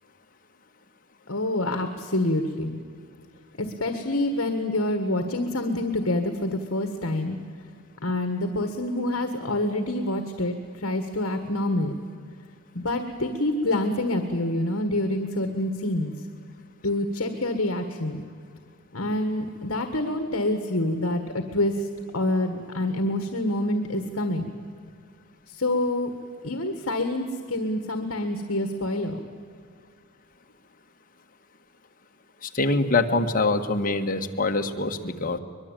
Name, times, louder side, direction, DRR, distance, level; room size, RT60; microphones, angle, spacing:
voice 1, 1.3-2.8 3.6-7.4 8.0-11.9 12.7-16.1 16.8-18.2 18.9-21.9 22.1-24.5 25.5-26.1 26.4-29.2, left 1 dB, 60° left, 7 dB, 1.7 m, -27 dB
voice 2, 32.4-35.4, left 3 dB, 40° left, 4 dB, 1.5 m, -24 dB
23.0 x 22.0 x 9.1 m, 2.1 s
head